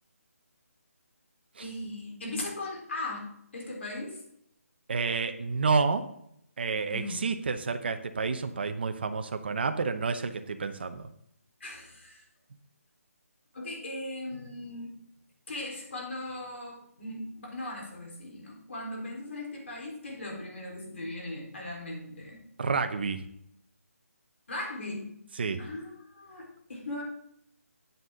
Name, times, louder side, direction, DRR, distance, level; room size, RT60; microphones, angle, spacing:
voice 1, 1.6-4.2 6.9-7.3 11.6-12.2 13.5-14.9 15.5-22.4 24.5-25.1 25.6-27.0, left 2 dB, 50° left, -1 dB, 3.9 m, -38 dB
voice 2, 4.9-6.1 6.6-11.1 22.6-23.2 25.4-25.6, right 4 dB, 40° right, 8 dB, 0.8 m, -29 dB
9.4 x 9.0 x 3.8 m, 0.73 s
hypercardioid pair, 170°, 8 cm